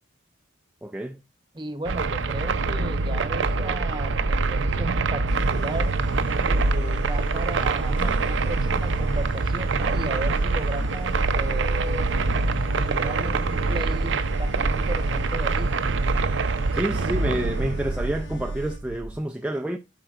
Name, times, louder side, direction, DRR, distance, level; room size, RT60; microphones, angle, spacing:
voice 1, 0.8-1.2 16.7-19.8, right 1 dB, 5° right, 0.3 m, -28 dB
voice 2, 1.5-5.9 6.4-12.2 12.8-15.7, right 1 dB, 25° right, 0.9 m, -35 dB
sound 1, 1.9-19.2, right 3 dB, 70° right, 0.6 m, -24 dB
sound 2, 5.3-18.8, left 1 dB, 70° left, 1.3 m, -47 dB
sound 3, 7.9-13.0, left 1 dB, 25° left, 0.9 m, -46 dB
12.0 x 4.5 x 2.4 m
head